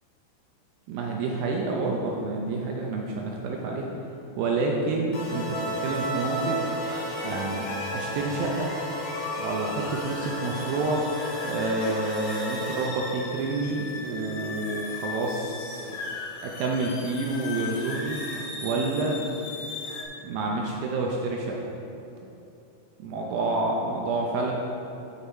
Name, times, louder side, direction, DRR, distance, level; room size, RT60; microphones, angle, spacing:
voice 1, 0.9-3.9 4.4-6.6 6.8-6.9 7.2-8.7 9.4-11.0 11.4-16.0 16.4-18.2 18.6-19.2 20.2-21.6 23.0-24.5, right 3 dB, 75° right, -1 dB, 2.3 m, -28 dB
sound 1, 5.1-12.9, left 1 dB, 55° left, 2.9 m, -35 dB
sound 2, 5.5-20.0, left 1 dB, 85° left, 3.0 m, -36 dB
9.0 x 7.0 x 4.2 m, 3.0 s
omnidirectional pair, 4.7 m